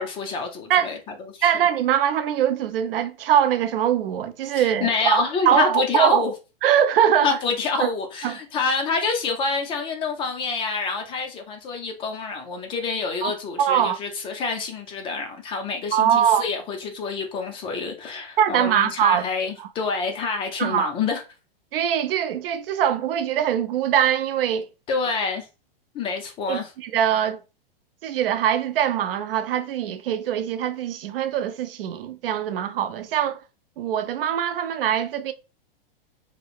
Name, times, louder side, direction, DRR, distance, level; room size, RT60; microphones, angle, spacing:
voice 1, 0.0-1.5 4.5-6.3 7.2-21.2 24.9-25.5 25.9-26.7, left 4 dB, 20° left, 0.4 m, -27 dB
voice 2, 1.4-6.3 6.6-7.3 7.8-7.9 8.2-8.4 13.2-13.3 13.6-14.0 15.9-16.4 18.4-19.3 20.6-20.9 21.7-24.7 26.5-27.4 28.0-33.4 33.8-35.3, right 10 dB, 70° right, 0.5 m, -22 dB
2.8 x 2.0 x 2.4 m
hypercardioid pair, 130°, 29 cm